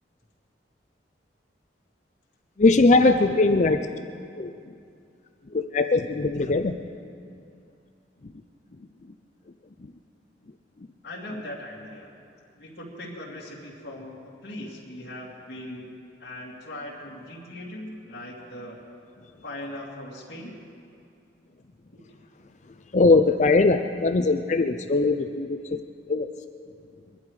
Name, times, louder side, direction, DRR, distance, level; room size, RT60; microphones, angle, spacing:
voice 1, 2.6-3.9 4.4-4.7 5.5-6.7 8.2-8.3 9.8-9.9 22.9-25.8 26.1-26.3, left 3 dB, 40° left, 7 dB, 0.5 m, -21 dB
voice 2, 11.0-12.1 12.6-15.9 16.2-18.8 19.4-20.6 21.9-22.0, left 1 dB, 60° left, -5 dB, 2.8 m, -39 dB
22.5 x 12.0 x 4.9 m, 2.4 s
head